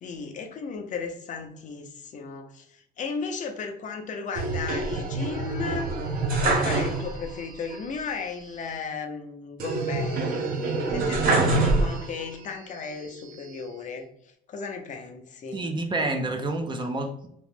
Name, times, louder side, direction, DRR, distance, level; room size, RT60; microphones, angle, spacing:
voice 1, 0.0-5.9 6.4-10.4 10.9-15.7, left 5 dB, 50° left, 5 dB, 0.5 m, -35 dB
sound 1, 4.4-7.4 7.7-7.8 9.6-12.3 12.9-13.7, right 3 dB, 60° right, 0.8 m, -26 dB
voice 2, 15.5-17.3, right 2 dB, 30° right, 5 dB, 0.4 m, -28 dB
2.9 x 2.4 x 3.3 m, 0.72 s
cardioid pair, 110°, 17 cm